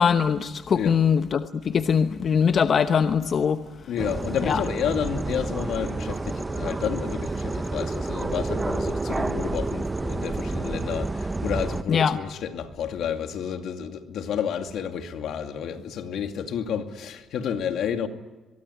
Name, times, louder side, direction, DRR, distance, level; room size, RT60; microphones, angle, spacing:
voice 1, 0.0-3.6 4.5-4.6 11.9-12.2, left 7 dB, 50° left, 0.9 m, -22 dB
voice 2, 3.9-18.1, left 8 dB, 75° left, 2.4 m, -30 dB
sound 1, 4.0-11.8, right 2 dB, 20° right, 1.0 m, -29 dB
23.5 x 22.5 x 9.9 m
cardioid pair, 90°, 0 cm